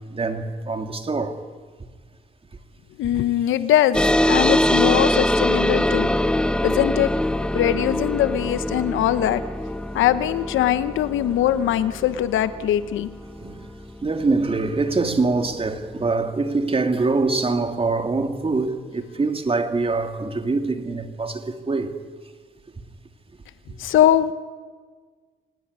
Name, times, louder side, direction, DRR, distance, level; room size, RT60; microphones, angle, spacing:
voice 1, 0.1-1.4 13.4-13.7 14.0-21.9, right 3 dB, 30° right, 2.6 m, -24 dB
voice 2, 3.0-6.1 6.6-7.1 7.5-9.4 9.9-13.1 23.8-24.3, left 11 dB, 80° left, 1.1 m, -21 dB
sound 1, 3.9-14.9, left 1 dB, 5° left, 0.8 m, -23 dB
29.5 x 18.5 x 9.8 m
cardioid pair, 90°, 20 cm